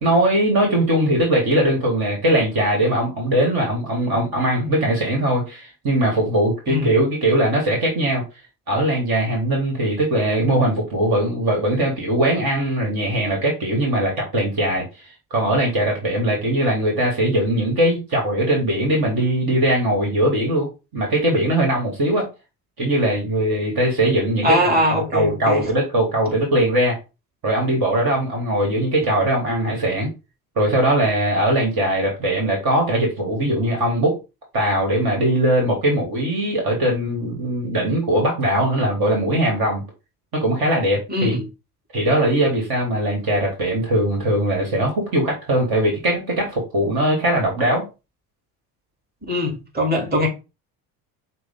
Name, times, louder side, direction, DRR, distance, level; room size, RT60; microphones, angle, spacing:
voice 1, 0.0-8.2 8.7-22.3 22.8-27.0 27.4-30.1 30.6-34.2 34.5-39.8 40.3-41.4 41.9-47.8, right 1 dB, 50° right, 2.0 m, -20 dB
voice 2, 24.4-25.7 41.1-41.4 49.3-50.3, left 1 dB, 20° right, 2.6 m, -21 dB
6.1 x 2.3 x 3.8 m
hypercardioid pair, 60°, 48 cm